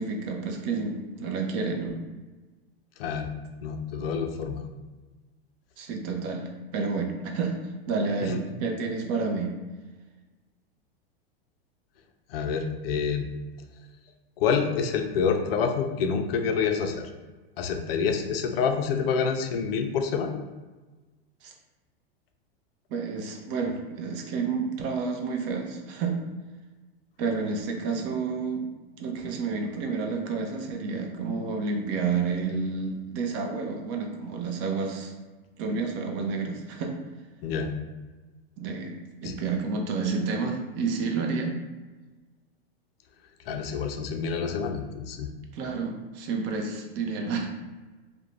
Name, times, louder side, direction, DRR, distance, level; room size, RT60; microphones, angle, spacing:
voice 1, 0.0-2.0 5.8-9.5 21.4-21.5 22.9-26.2 27.2-28.7 29.0-35.1 35.6-36.9 38.6-41.6 45.5-47.5, right 4 dB, 40° right, 3 dB, 0.5 m, -30 dB
voice 2, 3.0-3.3 3.6-4.6 8.2-8.4 12.3-13.3 14.4-17.1 17.6-20.3 37.4-37.7 39.2-39.3 43.5-45.3, left 6 dB, 70° left, 5 dB, 0.5 m, -27 dB
2.5 x 2.1 x 3.0 m, 1.2 s
hypercardioid pair, 115°, 31 cm